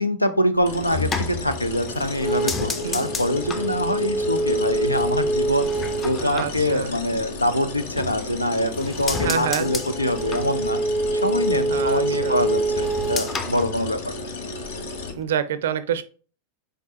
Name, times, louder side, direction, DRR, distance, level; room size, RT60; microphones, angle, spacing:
voice 1, 0.0-10.8 11.1-14.1, left 1 dB, 85° left, 11 dB, 0.5 m, -24 dB
sound 1, 0.6-7.4 7.8-8.5 8.8-14.5 14.7-15.2, right 1 dB, 20° left, 0.7 m, -26 dB
sound 2, 0.7-15.1, left 3 dB, 60° left, 0.9 m, -34 dB
voice 2, 6.2-6.9 9.2-9.7 11.7-12.5 15.2-16.0, right 8 dB, 60° right, 13 dB, 0.5 m, -27 dB
5.2 x 3.8 x 2.6 m, 0.38 s
figure-of-eight pair, 90°, 0 cm